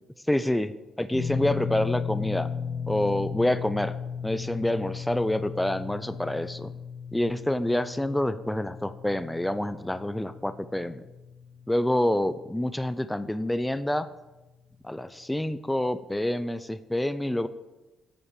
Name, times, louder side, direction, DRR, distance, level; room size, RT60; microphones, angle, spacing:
voice 1, 0.3-0.7 1.0-2.5 2.9-3.9 4.2-6.7 7.1-11.0 11.7-14.1 14.8-17.5, left 1 dB, 5° left, 12 dB, 0.6 m, -27 dB
sound 1, 1.1-13.4 13.6-13.9 15.5-15.6, left 6 dB, 30° left, 1.2 m, -36 dB
10.5 x 7.9 x 7.4 m, 1.1 s
cardioid pair, 90°, 0 cm